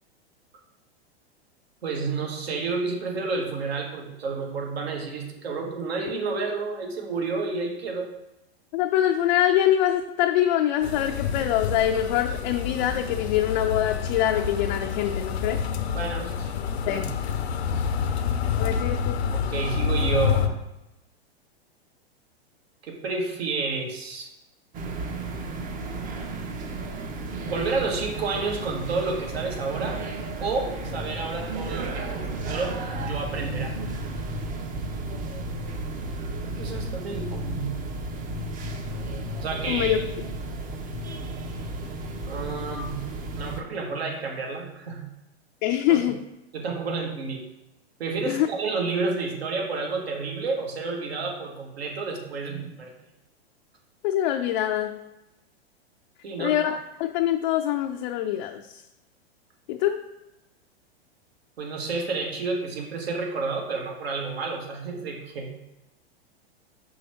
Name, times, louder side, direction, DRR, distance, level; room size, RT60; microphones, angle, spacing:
voice 1, 1.8-8.1 15.9-16.4 16.8-17.0 19.3-20.5 22.8-24.3 27.4-30.0 30.4-33.8 36.4-37.8 39.4-40.0 42.2-43.0 43.3-45.0 45.9-46.1 46.5-47.4 48.0-52.9 56.2-56.5 61.6-65.5, right 4 dB, 75° right, 1 dB, 1.6 m, -30 dB
voice 2, 8.7-15.6 16.9-17.1 18.6-19.2 39.7-40.0 45.6-46.2 48.3-48.5 54.0-55.0 56.4-58.8 59.7-60.1, left 11 dB, 50° left, 4 dB, 0.5 m, -24 dB
sound 1, 10.8-20.5, left 7 dB, 80° left, 0.7 m, -28 dB
sound 2, 24.7-43.6, right 2 dB, 25° right, 0.7 m, -33 dB
5.7 x 3.3 x 5.6 m, 0.93 s
hypercardioid pair, 115°, 31 cm